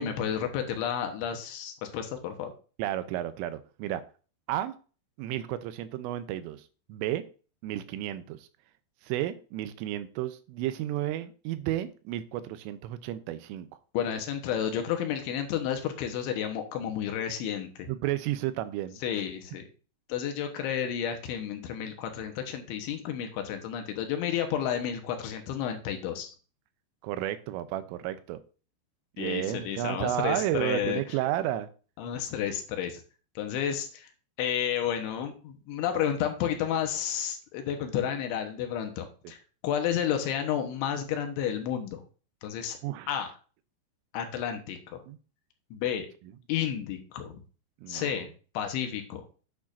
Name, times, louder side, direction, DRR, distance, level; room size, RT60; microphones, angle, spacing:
voice 1, 0.0-2.5 13.9-17.9 19.0-19.6 20.1-26.3 29.2-31.0 32.0-33.0 33.4-34.1 34.4-39.4 39.6-42.0 42.4-42.8 43.1-43.3 44.1-45.0 45.7-46.1 46.5-47.3 47.9-48.3 48.5-49.2, left 9 dB, 75° left, 5 dB, 3.3 m, -31 dB
voice 2, 2.8-4.0 4.5-4.7 5.2-6.6 6.9-7.2 7.6-8.5 9.0-13.7 17.9-19.0 27.0-28.4 29.2-31.7 42.8-43.1 45.1-45.2 47.8-48.2, right 13 dB, 90° right, 12 dB, 3.3 m, -32 dB
10.0 x 8.7 x 2.6 m, 0.37 s
omnidirectional pair, 5.7 m